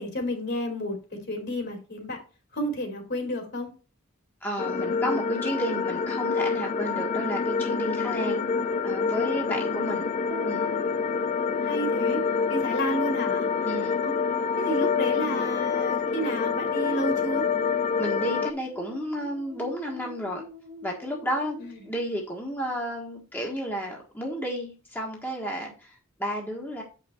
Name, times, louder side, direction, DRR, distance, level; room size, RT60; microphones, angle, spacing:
voice 1, 0.0-2.2 2.5-3.7 9.5-9.7 11.6-12.2 12.5-13.5 14.0-14.2 14.6-17.4 21.6-21.8, equal, 55° left, 2.9 m, -31 dB
voice 2, 4.4-8.4 8.8-10.1 10.5-10.7 13.6-14.0 18.0-20.4 20.8-21.6 21.8-26.8, equal, 10° left, 1.4 m, -32 dB
sound 1, 4.6-18.5, left 5 dB, 35° left, 0.4 m, -27 dB
sound 2, 10.3-22.8, left 2 dB, 30° right, 1.3 m, -44 dB
7.7 x 5.8 x 4.4 m
head